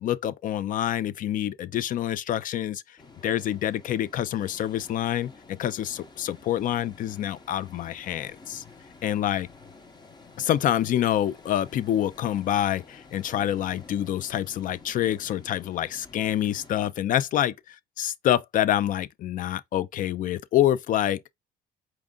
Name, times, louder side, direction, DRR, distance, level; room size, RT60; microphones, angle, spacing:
voice 1, 0.0-2.8 3.2-5.3 5.6-8.6 9.0-9.5 10.4-21.2, left 11 dB, 50° left, 0.4 m, -26 dB
sound 1, 3.0-16.9, left 3 dB, 25° left, 0.9 m, -51 dB
4.5 x 2.5 x 3.7 m
cardioid pair, 110°, 17 cm